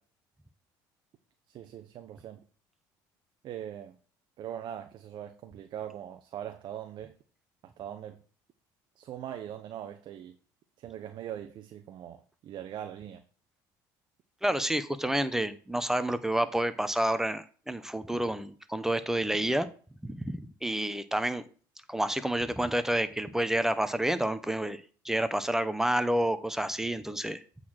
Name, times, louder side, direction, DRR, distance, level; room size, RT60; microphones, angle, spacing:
voice 1, 1.5-2.4 3.4-4.0 4.4-7.2 7.6-8.2 9.0-10.4 10.8-13.2, right 10 dB, 55° right, 0.8 m, -41 dB
voice 2, 14.4-19.7 20.0-21.4 21.9-27.4, right 1 dB, 5° right, 0.8 m, -29 dB
8.4 x 4.0 x 6.2 m
supercardioid pair, 90°, 10 cm